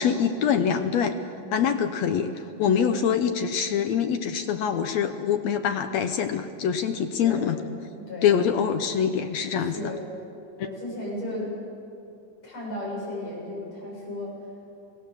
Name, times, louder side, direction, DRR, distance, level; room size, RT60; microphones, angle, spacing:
voice 1, 0.0-1.2 1.5-2.3 2.6-7.6 8.2-9.9, left 7 dB, 70° left, 8 dB, 1.8 m, -24 dB
voice 2, 1.4-1.7 2.6-3.0 7.2-7.5 8.0-8.3 9.6-10.1 10.6-11.6 12.4-14.4, left 1 dB, 55° left, -4 dB, 9.2 m, -35 dB
28.5 x 18.5 x 7.3 m, 2.5 s
omnidirectional pair, 3.8 m